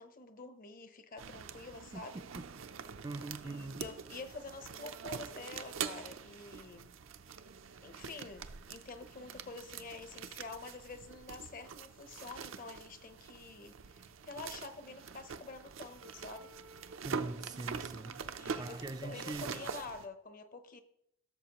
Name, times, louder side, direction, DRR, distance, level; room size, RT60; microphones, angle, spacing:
voice 1, 0.0-2.2 3.4-6.9 7.8-16.5 18.4-20.8, left 3 dB, 45° left, 0.8 m, -48 dB
sound 1, 1.2-20.1, right 6 dB, 75° right, 0.6 m, -45 dB
voice 2, 2.1-2.5 3.0-3.9 17.0-18.3 18.5-19.6, right 2 dB, 20° right, 0.4 m, -43 dB
15.5 x 6.9 x 3.0 m
head